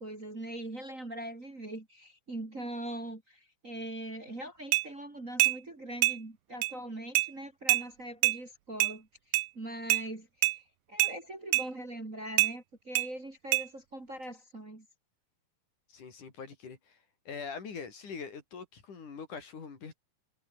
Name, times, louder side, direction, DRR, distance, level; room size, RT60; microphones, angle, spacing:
voice 1, 0.0-14.9, right 1 dB, 20° right, 3.6 m, -42 dB
sound 1, 4.7-4.9 5.4-5.6 6.0-6.2 6.6-6.7 7.1-7.3 7.7-7.8 8.2-8.4 8.8-8.9 9.3-9.5 9.9-10.0 10.4-10.6 11.0-11.1 11.5-11.7 12.4-12.5 12.9-13.1 13.5-13.6, right 15 dB, 80° right, 2.6 m, -25 dB
voice 2, 15.9-17.0 17.3-20.0, left 5 dB, 60° left, 5.7 m, -43 dB
omnidirectional pair, 4.0 m